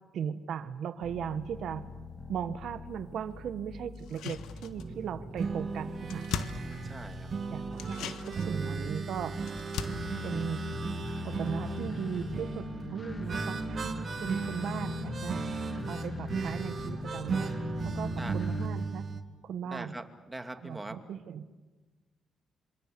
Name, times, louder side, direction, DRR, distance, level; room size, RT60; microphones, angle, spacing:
voice 1, 0.1-1.9 2.3-6.3 7.5-9.4 10.2-10.6 11.2-13.9 14.2-15.4 15.9-19.1 19.4-19.9 20.6-21.5, right 8 dB, 70° right, 12 dB, 1.5 m, -37 dB
sound 1, 1.0-18.7, left 3 dB, 30° left, 2.6 m, -41 dB
sound 2, 4.0-5.1 5.4-5.5 5.8-7.3 7.7-11.5 11.8-11.9, left 8 dB, 85° left, 1.5 m, -41 dB
sound 3, 4.8-19.2, right 5 dB, 45° right, 2.1 m, -36 dB
voice 2, 6.8-7.3 18.2-18.4 19.6-21.0, right 2 dB, 15° right, 6 dB, 2.4 m, -42 dB
27.5 x 25.5 x 7.1 m, 1.3 s
cardioid pair, 90°, 0 cm